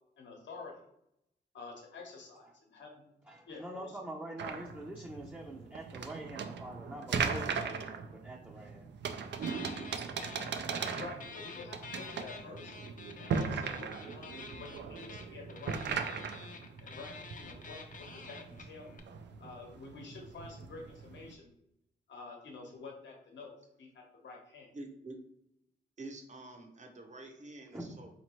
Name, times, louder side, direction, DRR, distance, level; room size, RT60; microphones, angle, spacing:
voice 1, 0.2-0.8 1.5-3.1 3.5-4.0 10.5-12.8 13.2-16.1 16.8-18.9 19.4-21.5 22.1-24.7, left 4 dB, 75° left, 1 dB, 1.0 m, -49 dB
voice 2, 3.3-8.9 27.7-28.0, right 1 dB, 10° right, -1 dB, 0.6 m, -45 dB
sound 1, 4.4-21.3, right 6 dB, 70° right, 0.4 m, -39 dB
sound 2, 9.4-10.5 10.7-19.0, left 5 dB, 45° left, 0.6 m, -48 dB
voice 3, 24.7-25.2 26.0-28.1, right 2 dB, 40° right, 4 dB, 0.8 m, -47 dB
3.9 x 2.9 x 3.0 m, 0.77 s
cardioid pair, 60°, 19 cm